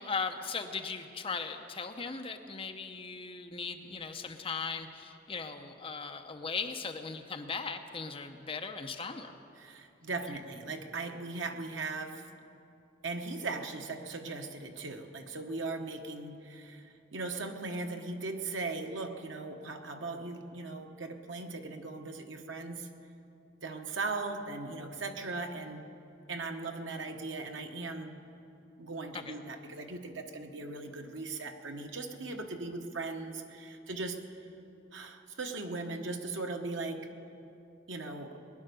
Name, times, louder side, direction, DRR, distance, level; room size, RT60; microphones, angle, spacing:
voice 1, 0.0-9.3 29.1-29.3, left 5 dB, 30° left, 5 dB, 0.8 m, -38 dB
voice 2, 9.6-12.3 13.0-22.9 23.6-25.9 26.3-28.2 28.8-34.2 34.9-37.1 37.9-38.4, right 3 dB, 75° right, 4 dB, 1.2 m, -38 dB
20.5 x 10.5 x 6.8 m, 2.7 s
head